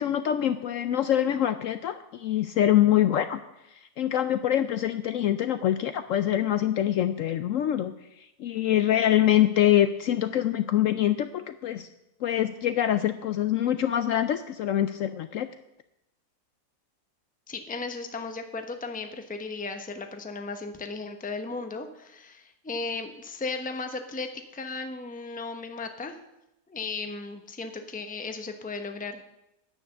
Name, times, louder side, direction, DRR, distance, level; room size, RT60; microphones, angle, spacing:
voice 1, 0.0-3.4 4.0-7.9 8.4-11.9 12.2-15.5, left 11 dB, 70° left, 11 dB, 0.8 m, -24 dB
voice 2, 17.5-26.2 26.7-29.2, left 3 dB, 10° left, 6 dB, 0.7 m, -36 dB
9.8 x 9.3 x 6.8 m, 0.89 s
omnidirectional pair, 1.6 m